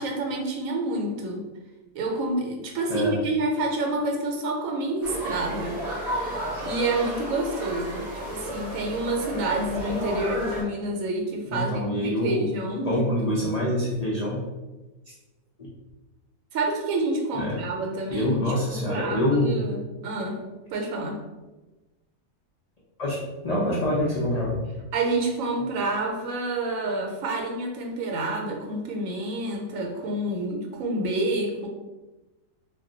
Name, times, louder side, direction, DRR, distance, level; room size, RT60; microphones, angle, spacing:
voice 1, 0.0-1.4 1.9-5.8 6.6-13.5 16.5-21.3 24.9-31.7, right 2 dB, 80° right, 2 dB, 1.0 m, -28 dB
sound 1, 5.0-10.6, equal, 35° right, 0.7 m, -32 dB
voice 2, 11.5-12.5 12.8-14.4 17.4-17.6 18.1-19.5 23.0-24.6, left 1 dB, 70° left, -5 dB, 0.3 m, -25 dB
2.3 x 2.2 x 3.7 m, 1.1 s
omnidirectional pair, 1.4 m